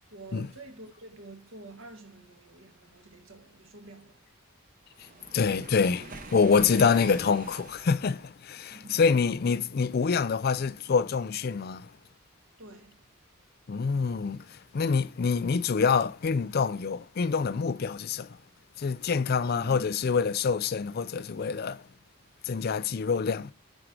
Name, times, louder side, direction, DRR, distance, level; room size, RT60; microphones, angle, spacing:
voice 1, 0.1-4.2 8.7-9.0 12.6-13.0 19.5-19.9, right 2 dB, 65° right, 1.7 m, -48 dB
Waves surf, 4.9-8.2, right 2 dB, 40° right, 1.1 m, -44 dB
voice 2, 5.3-11.9 13.7-18.4 18.8-21.8 22.4-23.5, left 5 dB, 45° left, 0.4 m, -26 dB
9.7 x 4.6 x 5.0 m
head